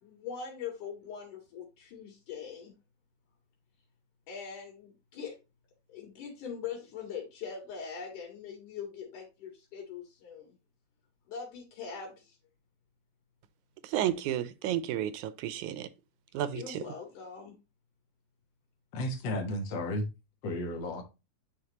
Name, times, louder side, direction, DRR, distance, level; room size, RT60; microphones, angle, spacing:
voice 1, 0.0-2.7 4.3-5.3 5.9-10.5 11.3-12.4 16.5-17.5, left 6 dB, 85° left, 3.4 m, -42 dB
voice 2, 13.9-15.9 16.3-16.8, right 11 dB, 80° right, 2.0 m, -32 dB
voice 3, 18.9-20.1 20.4-21.0, left 1 dB, 50° left, 1.4 m, -33 dB
9.5 x 4.4 x 2.9 m
omnidirectional pair, 3.5 m